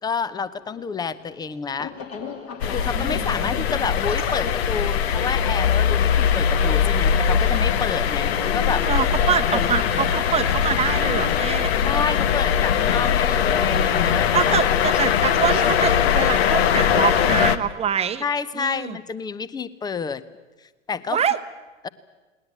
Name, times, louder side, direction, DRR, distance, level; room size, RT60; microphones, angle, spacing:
voice 1, 0.0-1.9 2.7-8.9 9.5-10.1 11.8-14.5 18.2-20.2 20.6-21.2 21.8-21.9, left 5 dB, 10° left, 17 dB, 0.8 m, -29 dB
sound 1, 0.6-17.2, left 6 dB, 35° left, 2.8 m, -38 dB
sound 2, 2.6-17.6, left 8 dB, 55° left, 1.1 m, -21 dB
voice 2, 2.9-3.6 8.9-11.7 14.3-18.2 18.6-19.0 21.1-21.4, right 8 dB, 15° right, 11 dB, 1.0 m, -25 dB
19.5 x 19.5 x 9.3 m, 1.2 s
figure-of-eight pair, 95°, 37 cm